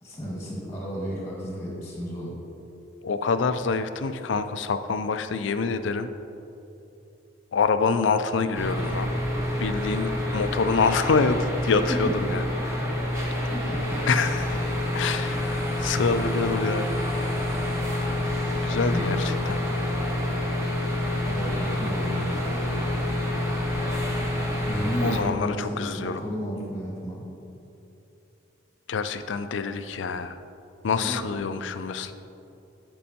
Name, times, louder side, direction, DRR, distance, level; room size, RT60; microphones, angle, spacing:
voice 1, 0.0-2.4 11.8-12.4 13.5-14.1 18.9-19.2 21.2-22.8 24.6-27.3 31.0-31.3, equal, 15° left, -4 dB, 1.6 m, -33 dB
voice 2, 3.0-6.1 7.5-9.1 9.6-12.4 12.8-13.0 14.1-14.6 14.9-16.9 18.6-19.6 25.0-26.2 28.9-30.4 30.8-32.1, left 4 dB, 70° left, 10 dB, 0.4 m, -26 dB
sound 1, 8.5-25.2, left 1 dB, 15° right, 1.2 m, -27 dB
12.5 x 5.4 x 2.9 m, 2.9 s
head